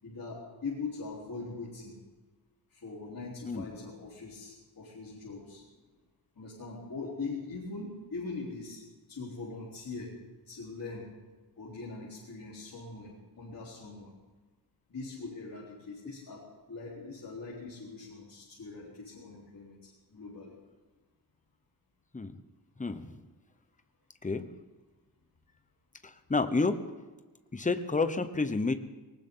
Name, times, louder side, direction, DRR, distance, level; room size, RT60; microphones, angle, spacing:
voice 1, 0.0-1.9 2.7-5.6 6.4-8.8 9.1-11.2 11.6-14.1 14.9-20.6, left 3 dB, 55° left, -7 dB, 3.9 m, -42 dB
voice 2, 26.0-26.8 27.5-28.7, left 3 dB, 20° left, 9 dB, 0.9 m, -29 dB
19.5 x 19.0 x 3.9 m, 1.3 s
wide cardioid pair, 160°, 41 cm